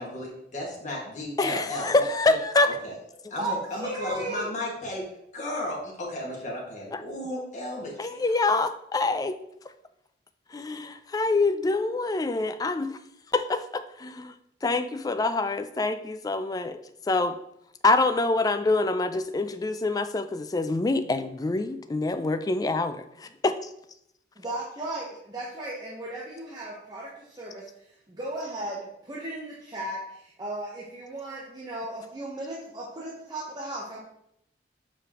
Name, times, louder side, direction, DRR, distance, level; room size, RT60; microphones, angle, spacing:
voice 1, 0.0-2.4 2.8-3.0 3.3-5.0 5.3-8.3, left 1 dB, 40° left, -3 dB, 1.8 m, -34 dB
voice 2, 1.4-2.7 6.9-7.0 8.0-9.4 10.5-13.0 13.3-14.3 14.6-16.8 17.1-17.4 17.8-23.7, left 3 dB, 20° left, 10 dB, 0.3 m, -26 dB
voice 3, 3.4-4.5 24.4-34.0, right 1 dB, 20° right, -5 dB, 0.9 m, -36 dB
6.7 x 5.1 x 2.9 m, 0.76 s
head